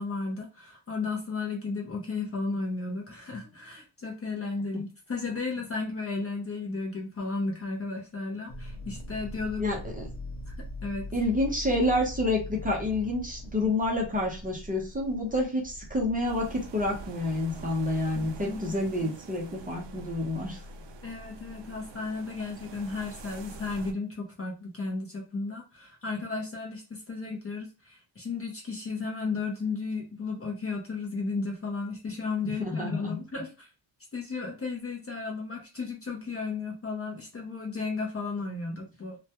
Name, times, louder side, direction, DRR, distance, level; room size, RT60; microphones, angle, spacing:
voice 1, 0.0-9.7 10.5-10.6 10.8-11.1 18.1-18.7 21.0-33.7 34.1-39.2, left 4 dB, 30° left, 0 dB, 0.5 m, -34 dB
sound 1, 8.5-17.1, left 1 dB, 85° left, 0.6 m, -41 dB
voice 2, 9.6-10.1 11.1-20.6 32.4-33.2, left 1 dB, 20° right, -2 dB, 0.6 m, -28 dB
sound 2, 16.2-23.9, right 2 dB, 65° right, 0.5 m, -45 dB
2.2 x 2.1 x 2.7 m, 0.33 s
wide cardioid pair, 135°, 47 cm